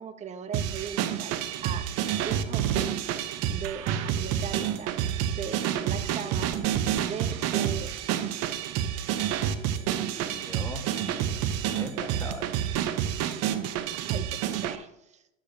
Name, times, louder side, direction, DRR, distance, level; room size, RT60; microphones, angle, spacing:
voice 1, 0.0-1.9 2.2-3.0 3.5-4.9 5.2-6.5 7.0-7.9 14.0-15.2, right 7 dB, 20° right, 9 dB, 0.8 m, -38 dB
sound 1, 0.5-14.8, right 10 dB, 45° right, 0.9 m, -29 dB
voice 2, 10.0-12.5, left 2 dB, 10° left, 4 dB, 1.3 m, -42 dB
12.0 x 8.9 x 2.7 m, 0.85 s
hypercardioid pair, 105°, 37 cm